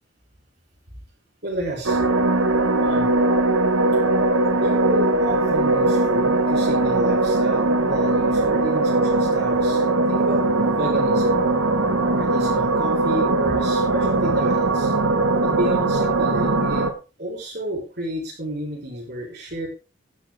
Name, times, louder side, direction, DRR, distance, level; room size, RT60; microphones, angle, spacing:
voice 1, 1.4-2.0 2.8-3.1 4.6-11.4 12.2-14.9 15.4-16.9 17.2-19.7, right 1 dB, 50° right, -2 dB, 4.0 m, -30 dB
sound 1, 1.8-16.9, right 2 dB, 90° right, 1.7 m, -20 dB
13.0 x 10.5 x 3.6 m, 0.31 s
head